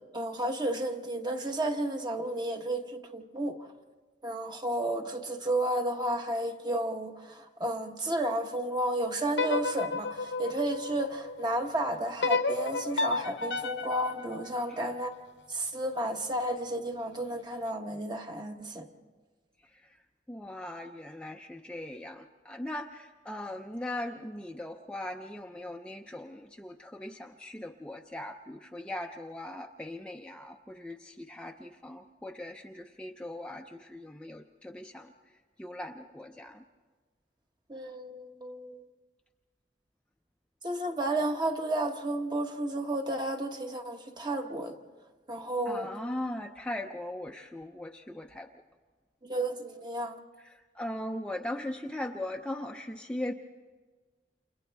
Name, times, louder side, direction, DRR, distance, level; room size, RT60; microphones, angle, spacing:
voice 1, 0.0-3.7 4.2-15.1 15.5-18.9 37.7-38.8 40.6-44.8 45.3-45.9 49.2-50.1, right 1 dB, 25° right, 1.1 m, -32 dB
sound 1, 9.3-11.5 12.2-15.3, left 3 dB, 80° left, 1.0 m, -32 dB
voice 2, 19.6-20.0 20.3-36.6 45.7-48.5 50.4-53.3, left 1 dB, 5° left, 0.5 m, -39 dB
30.0 x 28.5 x 3.4 m
head